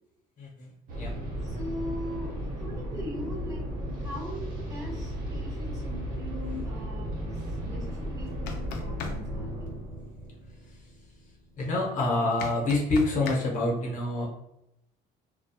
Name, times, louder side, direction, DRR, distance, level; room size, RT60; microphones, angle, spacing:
voice 1, 0.4-1.1 3.5-3.6 6.4-6.7 8.4-8.5 10.6-10.8 11.6-14.3, left 2 dB, 45° left, -3 dB, 0.9 m, -28 dB
sound 1, 0.9-11.6, equal, 55° right, 1.0 m, -35 dB
voice 2, 1.4-2.3 2.6-3.6 4.0-7.4 7.6-9.8, equal, 20° right, -3 dB, 1.2 m, -40 dB
sound 2, 8.3-9.2 12.4-13.4, left 5 dB, 85° left, 0.5 m, -35 dB
2.8 x 2.2 x 2.3 m, 0.83 s
cardioid pair, 110°, 17 cm